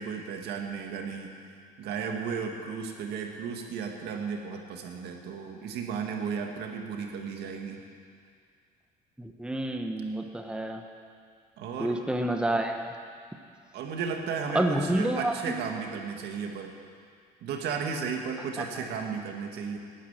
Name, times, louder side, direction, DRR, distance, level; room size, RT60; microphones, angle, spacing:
voice 1, 0.0-7.8 11.6-12.0 13.7-16.7 17.4-19.8, right 6 dB, 75° right, 2 dB, 2.0 m, -34 dB
voice 2, 9.2-10.8 11.8-12.9 14.5-15.5, right 1 dB, 5° right, 4 dB, 1.1 m, -28 dB
13.0 x 10.5 x 9.0 m, 2.2 s
cardioid pair, 110°, 17 cm